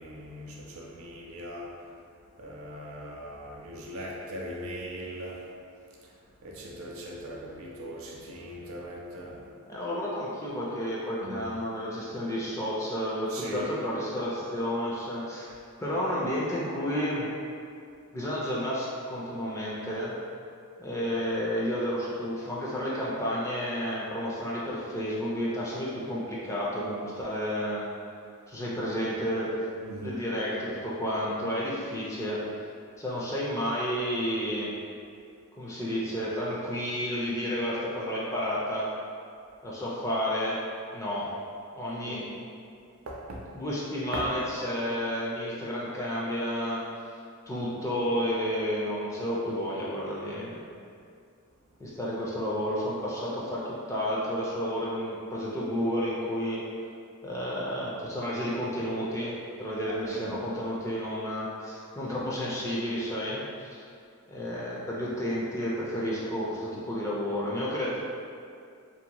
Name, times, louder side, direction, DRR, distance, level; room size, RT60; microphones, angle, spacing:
voice 1, 0.0-1.8 2.4-5.5 6.0-6.1 6.4-9.5 11.2-11.6 13.3-13.7 29.8-30.2 41.9-42.4 43.1-43.5 44.1-44.3 59.8-60.4, right 1 dB, 65° right, -2 dB, 0.4 m, -39 dB
voice 2, 9.7-15.5 15.8-17.3 18.1-20.2 20.8-27.9 28.5-29.5 30.0-32.4 33.0-34.7 35.6-38.9 39.6-40.6 40.9-41.3 41.7-42.3 43.5-46.8 47.5-50.6 51.8-56.6 57.2-63.8 64.3-68.0, equal, 15° left, -6 dB, 0.3 m, -31 dB
2.6 x 2.1 x 2.8 m, 2.4 s
head